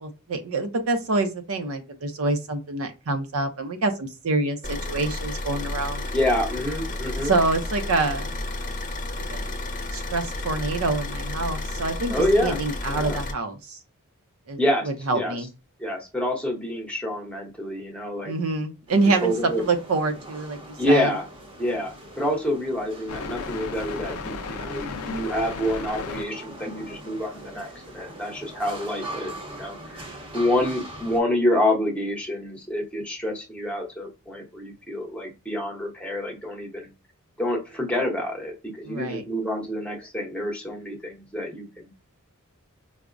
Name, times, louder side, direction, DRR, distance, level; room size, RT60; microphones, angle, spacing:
voice 1, 0.0-6.0 7.2-8.3 9.3-9.4 9.9-13.8 14.5-14.6 14.9-15.5 18.2-19.3 19.6-20.6 20.9-21.1 38.9-39.2, right 3 dB, 65° right, 7 dB, 0.5 m, -26 dB
Car / Idling, 4.6-13.3, left 2 dB, 35° left, 0.7 m, -31 dB
voice 2, 6.1-7.3 12.1-12.6 12.9-13.2 14.6-15.4 15.8-18.3 19.0-19.6 20.8-21.3 21.6-30.1 30.3-36.9 37.4-41.9, left 1 dB, 5° left, 0 dB, 0.8 m, -27 dB
sound 1, 18.9-31.2, right 1 dB, 25° right, 0.7 m, -42 dB
sound 2, 23.1-26.2, left 4 dB, 75° left, 0.5 m, -34 dB
4.6 x 2.0 x 2.5 m, 0.29 s
head